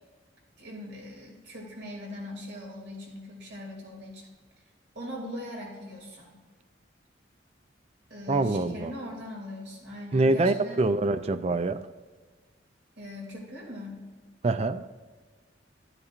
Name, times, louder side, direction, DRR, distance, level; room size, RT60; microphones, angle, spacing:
voice 1, 0.6-4.3 4.9-6.4 8.1-10.9 13.0-14.1, left 1 dB, 65° right, -2 dB, 2.6 m, -40 dB
voice 2, 8.3-8.9 10.1-11.8 14.4-14.8, right 2 dB, 35° right, 11 dB, 0.4 m, -25 dB
12.5 x 9.8 x 2.5 m, 1.4 s
head